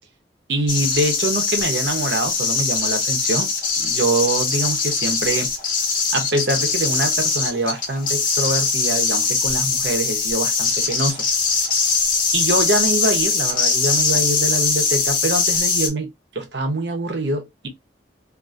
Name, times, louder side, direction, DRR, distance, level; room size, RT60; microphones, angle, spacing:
voice 1, 0.5-3.5 3.8-5.5 6.1-11.2 12.3-17.7, right 2 dB, 65° right, 0.9 m, -24 dB
sound 1, 0.7-15.9, left 4 dB, 45° left, 0.8 m, -21 dB
2.6 x 2.6 x 2.4 m
head